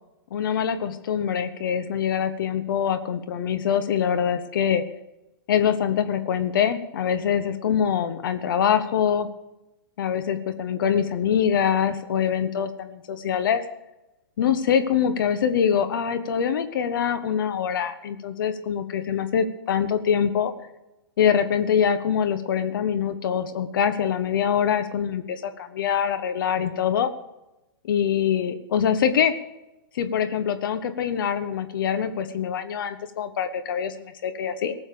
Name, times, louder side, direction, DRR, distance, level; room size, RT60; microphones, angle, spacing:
voice 1, 0.3-4.8 5.5-9.3 10.0-13.6 14.4-20.5 21.2-27.1 27.9-29.3 29.9-34.7, left 8 dB, 60° left, 10 dB, 1.3 m, -24 dB
18.5 x 7.2 x 6.9 m, 0.94 s
hypercardioid pair, 115°, 13 cm